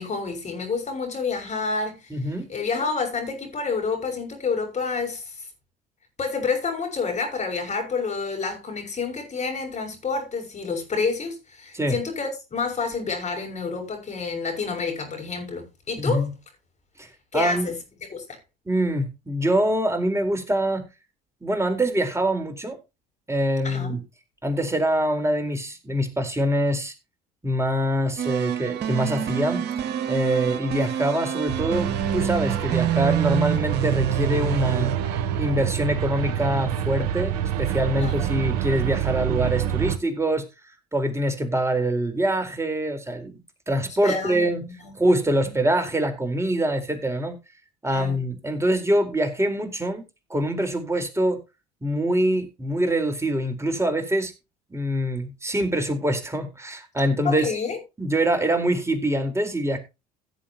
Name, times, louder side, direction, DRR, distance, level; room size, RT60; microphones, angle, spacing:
voice 1, 0.0-2.1 2.5-5.5 6.2-16.3 17.3-17.8 18.1-18.2 23.6-24.0 38.0-38.5 44.0-44.9 45.4-45.5 47.9-48.2 57.2-57.8, left 4 dB, 35° left, 6.6 m, -29 dB
voice 2, 2.1-2.5 11.7-12.0 16.0-16.3 17.0-17.1 17.3-17.7 18.7-20.8 21.4-22.8 23.3-24.0 24.4-26.9 27.4-29.6 30.1-34.9 35.4-40.4 40.9-43.4 43.7-44.6 45.0-47.3 47.8-50.0 50.3-51.4 51.8-54.3 54.7-57.5 58.0-59.8, right 1 dB, 15° right, 4.2 m, -24 dB
sound 1, 28.2-36.4, right 9 dB, 60° right, 2.1 m, -27 dB
sound 2, 31.5-40.0, right 10 dB, 80° right, 1.0 m, -27 dB
17.0 x 7.8 x 2.9 m
hypercardioid pair, 65°, 20 cm